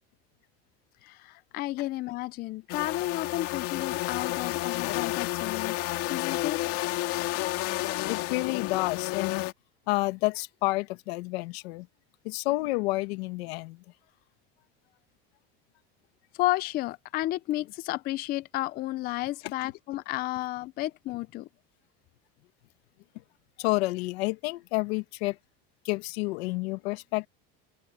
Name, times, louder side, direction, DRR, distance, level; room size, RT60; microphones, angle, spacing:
voice 1, 1.0-5.8 6.1-6.6 16.3-21.5, left 17 dB, 30° left, 0.4 m, -32 dB
sound 1, 2.7-9.5, left 17 dB, 50° left, 2.2 m, -31 dB
voice 2, 8.1-9.4 9.9-11.9 12.2-13.8 23.6-25.4 25.8-27.3, left 22 dB, 85° left, 2.0 m, -29 dB
open air
cardioid pair, 155°, 30 cm